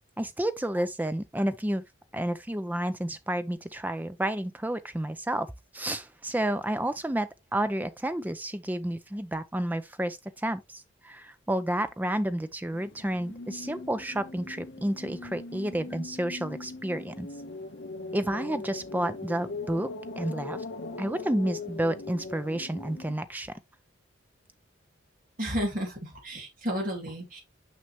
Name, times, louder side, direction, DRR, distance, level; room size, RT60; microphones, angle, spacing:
voice 1, 0.2-1.8 2.1-5.5 5.7-10.6 11.0-17.3 18.1-19.9 20.2-20.6 21.0-23.5, right 1 dB, 10° right, 0.4 m, -30 dB
sound 1, 12.7-23.1, left 2 dB, 60° left, 1.0 m, -40 dB
voice 2, 25.4-27.4, equal, 45° right, 2.6 m, -32 dB
6.2 x 5.6 x 3.1 m
head